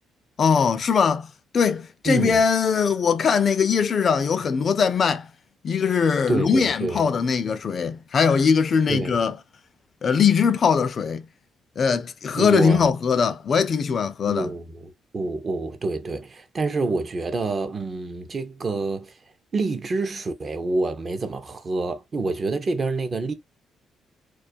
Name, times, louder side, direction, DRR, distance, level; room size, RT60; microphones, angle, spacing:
voice 1, 0.4-5.3 5.6-9.4 10.0-11.2 11.8-14.5, left 6 dB, 50° left, 0.4 m, -21 dB
voice 2, 2.0-2.4 6.3-7.1 8.9-9.1 12.3-12.9 14.3-19.1 19.5-23.3, right 3 dB, 40° right, 0.5 m, -27 dB
2.3 x 2.2 x 2.5 m
cardioid pair, 90°, 0 cm